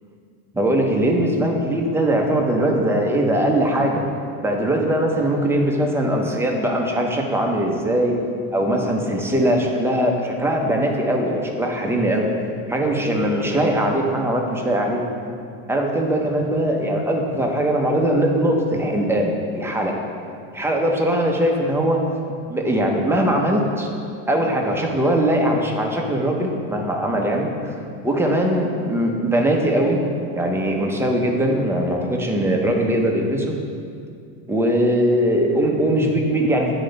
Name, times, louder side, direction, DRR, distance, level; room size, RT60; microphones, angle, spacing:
voice 1, 0.5-4.1 4.4-8.2 8.5-12.3 12.7-15.0 15.7-19.9 20.5-22.1 22.5-23.9 24.3-30.0 30.3-33.5 34.5-36.8, right 1 dB, 5° right, 0 dB, 0.6 m, -21 dB
9.5 x 3.9 x 5.2 m, 2.4 s
supercardioid pair, 140°, 42 cm